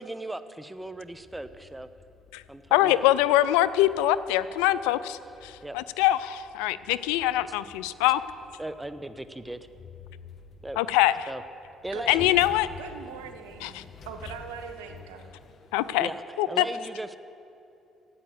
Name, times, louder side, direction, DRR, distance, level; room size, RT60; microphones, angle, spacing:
voice 1, 0.0-1.9 2.5-3.0 5.6-5.8 8.6-9.7 10.6-10.8 11.3-11.4 11.8-12.3 16.0-17.2, right 1 dB, 10° right, 12 dB, 0.8 m, -37 dB
sound 1, 0.8-16.2, left 5 dB, 60° left, 1.2 m, -50 dB
voice 2, 2.7-8.2 10.8-11.3 12.1-12.7 13.6-13.8 15.7-16.1 16.4-16.6, left 14 dB, 85° left, 16 dB, 0.4 m, -24 dB
voice 3, 12.8-13.8 14.1-15.3, right 7 dB, 90° right, 7 dB, 0.9 m, -41 dB
12.5 x 9.2 x 7.9 m, 2.7 s
hypercardioid pair, 60°, 0 cm